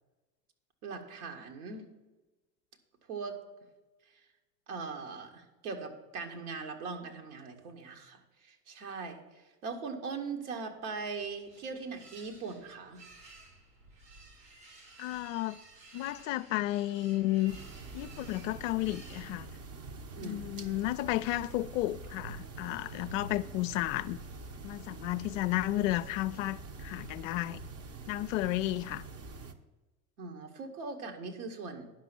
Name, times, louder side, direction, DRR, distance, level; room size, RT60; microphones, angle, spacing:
voice 1, 0.8-1.9 3.1-3.4 4.7-13.1 20.2-20.7 30.2-31.9, right 4 dB, 65° right, 1.9 m, -40 dB
sound 1, 10.9-19.8, right 2 dB, 80° right, 4.4 m, -56 dB
voice 2, 15.0-15.6 15.9-17.6 17.9-19.5 20.2-24.2 24.6-27.6 28.1-29.0, left 16 dB, 55° left, 0.5 m, -32 dB
sound 2, 17.5-29.5, right 3 dB, 30° right, 1.0 m, -45 dB
10.0 x 5.9 x 7.5 m
figure-of-eight pair, 80°, 47 cm